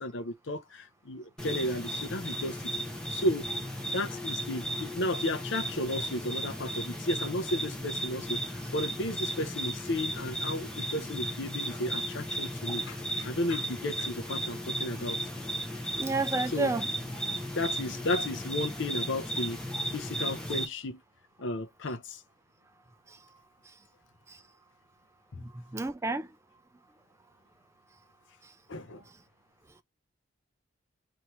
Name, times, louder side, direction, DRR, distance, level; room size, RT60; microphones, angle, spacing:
voice 1, 0.0-2.7 3.1-3.5 3.9-15.2 16.5-16.7 17.5-19.6 19.9-21.0 21.4-22.2 28.7-29.0, left 1 dB, 60° left, 0.6 m, -33 dB
sound 1, 1.4-20.6, right 1 dB, 5° left, 0.8 m, -35 dB
voice 2, 16.0-16.9 24.3-24.4 25.4-26.3, right 3 dB, 15° right, 0.3 m, -31 dB
3.0 x 2.7 x 4.3 m
head